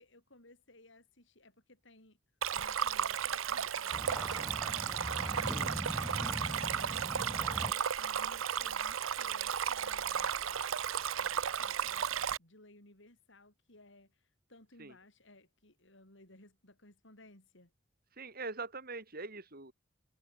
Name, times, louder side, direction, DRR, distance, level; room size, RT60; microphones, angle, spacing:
voice 1, 0.0-2.2 2.5-4.8 6.4-10.4 11.1-14.1 14.5-17.7, left 2 dB, 65° left, 7.0 m, -59 dB
Stream, 2.4-12.4, right 8 dB, 85° right, 0.7 m, -34 dB
sound 1, 3.9-7.7, equal, ahead, 2.1 m, -40 dB
voice 2, 18.1-19.7, right 3 dB, 50° right, 5.1 m, -43 dB
head